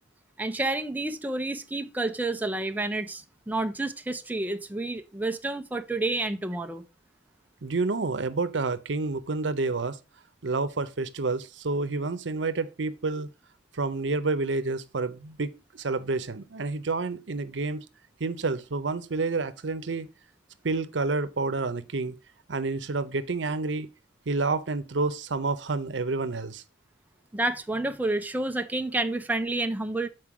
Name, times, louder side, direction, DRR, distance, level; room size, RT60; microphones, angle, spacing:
voice 1, 0.4-6.8 27.3-30.1, right 2 dB, 10° right, 0.5 m, -29 dB
voice 2, 7.6-10.0 10.4-13.3 13.7-17.9 18.2-20.1 20.6-22.2 22.5-23.9 24.3-26.6, right 3 dB, 85° right, 0.7 m, -29 dB
7.6 x 4.6 x 4.7 m
head